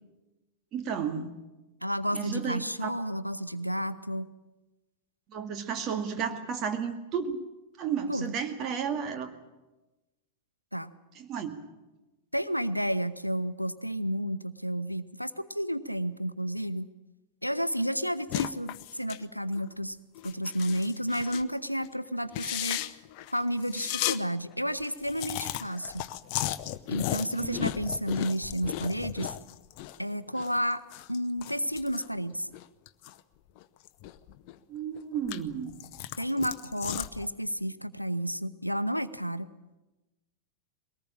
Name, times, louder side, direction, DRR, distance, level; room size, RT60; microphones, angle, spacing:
voice 1, 0.7-1.4 2.1-2.9 5.3-7.4 7.8-9.3 11.2-11.6 27.3-27.7 34.7-35.7, right 7 dB, 35° right, 6 dB, 2.2 m, -33 dB
voice 2, 1.8-4.3 8.1-8.3 10.7-10.9 12.3-16.9 17.4-20.0 20.2-23.0 23.3-26.1 26.9-29.3 30.0-30.8 31.1-32.5 36.2-39.5, equal, 90° left, 13 dB, 0.8 m, -31 dB
sound 1, 18.3-19.2 19.5-19.7 20.1-21.5 21.8-21.9 22.3-24.2 24.5-24.6 24.8-30.0 30.3-33.2 33.6-34.5 34.9-37.3, left 13 dB, 45° left, 0.7 m, -35 dB
21.5 x 18.5 x 8.8 m, 1.1 s
figure-of-eight pair, 90°, 0 cm